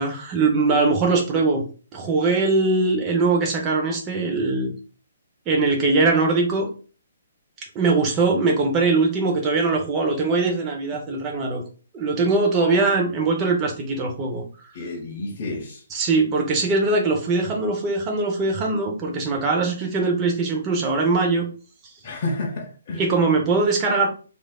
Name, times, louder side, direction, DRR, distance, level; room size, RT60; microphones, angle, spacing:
voice 1, 0.0-1.6 1.9-4.7 5.5-6.7 7.7-11.6 11.9-14.4 15.9-21.4 22.9-24.1, right 3 dB, 25° right, 0.7 m, -21 dB
voice 2, 14.7-15.8 22.0-23.1, left 2 dB, 45° left, 0.6 m, -30 dB
3.2 x 2.5 x 2.3 m
figure-of-eight pair, 135°, 0 cm